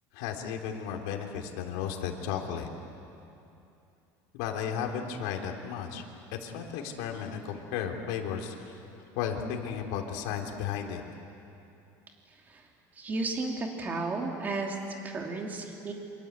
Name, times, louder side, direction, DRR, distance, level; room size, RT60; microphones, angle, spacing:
voice 1, 0.1-2.7 4.3-6.0 6.3-8.8 9.2-11.0, left 8 dB, 85° left, 2 dB, 3.3 m, -34 dB
voice 2, 13.0-14.8 15.0-15.9, right 3 dB, 20° right, 1 dB, 2.8 m, -33 dB
28.0 x 25.5 x 8.2 m, 2.7 s
cardioid pair, 165°, 8 cm